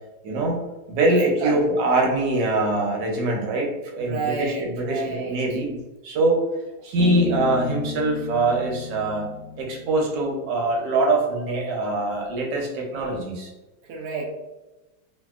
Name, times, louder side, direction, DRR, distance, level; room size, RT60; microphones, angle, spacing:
voice 1, 0.2-0.6 0.9-5.8 6.0-6.4 6.8-13.5, right 2 dB, 70° right, -1 dB, 1.2 m, -23 dB
voice 2, 1.0-1.6 4.0-5.6 13.8-14.3, right 4 dB, 85° right, 0 dB, 0.8 m, -31 dB
Bass guitar, 7.0-10.5, left 6 dB, 75° left, 1.2 m, -33 dB
2.9 x 2.7 x 2.3 m, 1.1 s
omnidirectional pair, 2.2 m